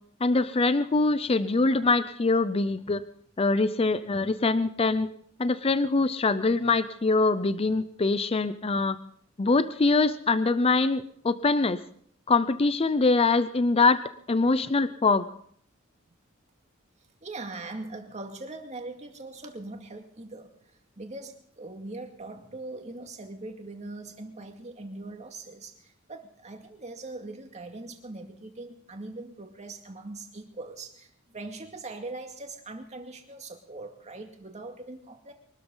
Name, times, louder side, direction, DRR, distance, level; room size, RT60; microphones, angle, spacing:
voice 1, 0.2-3.0 3.4-5.1 5.4-9.0 9.4-11.8 12.3-14.0 14.3-15.3, left 3 dB, 30° left, 13 dB, 0.5 m, -23 dB
voice 2, 17.2-35.3, right 2 dB, 35° right, 4 dB, 2.3 m, -41 dB
23.5 x 13.0 x 3.9 m, 0.62 s
head